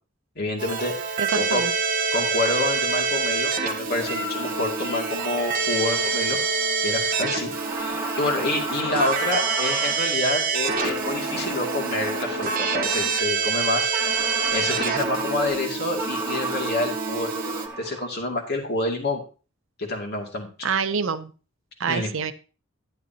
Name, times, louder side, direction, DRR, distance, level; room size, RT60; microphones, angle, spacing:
voice 1, 0.4-0.9 1.3-1.6 2.1-6.4 6.8-7.5 7.8-13.9 14.5-19.2 19.8-20.7 21.9-22.2, left 2 dB, 55° left, 1 dB, 2.3 m, -28 dB
Keyboard (musical), 0.6-17.7, right 5 dB, 45° right, 1.1 m, -27 dB
voice 2, 1.2-1.7 20.6-21.3 21.8-22.3, right 5 dB, 75° right, 11 dB, 0.7 m, -26 dB
sound 1, 4.0-7.1 7.5-10.1 10.6-13.3 13.9-18.1, right 2 dB, 15° right, 1.3 m, -33 dB
11.5 x 9.8 x 2.8 m, 0.34 s
head